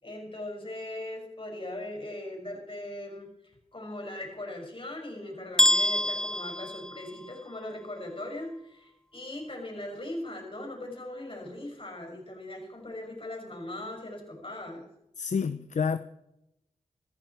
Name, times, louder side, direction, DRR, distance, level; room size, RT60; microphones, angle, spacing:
voice 1, 0.0-14.9, left 1 dB, 40° left, 6.2 m, -39 dB
sound 1, 5.6-7.6, left 1 dB, 5° left, 0.4 m, -26 dB
voice 2, 15.2-16.0, left 6 dB, 60° left, 0.6 m, -28 dB
15.0 x 14.5 x 4.6 m
cardioid pair, 60°, 14 cm